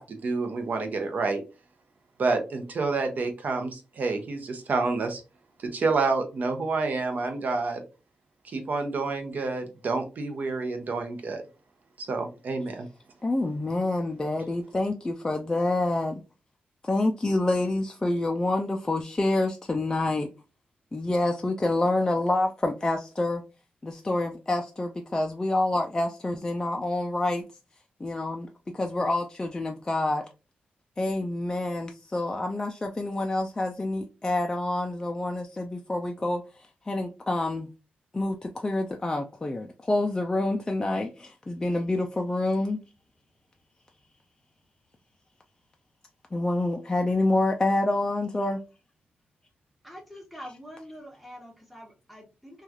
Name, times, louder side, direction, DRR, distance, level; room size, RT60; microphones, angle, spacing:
voice 1, 0.0-1.4 2.2-5.2 5.6-7.8 8.4-11.4 12.0-12.9, right 3 dB, 55° right, 0.7 m, -28 dB
voice 2, 13.2-16.2 16.8-20.3 20.9-23.4 23.8-27.4 28.0-28.5 28.7-30.2 31.0-36.4 36.9-37.7 38.1-42.8 46.3-48.6, left 2 dB, 20° left, 0.3 m, -27 dB
voice 3, 49.8-52.6, equal, ahead, 0.8 m, -45 dB
3.0 x 2.3 x 2.4 m
wide cardioid pair, 105°, 3 cm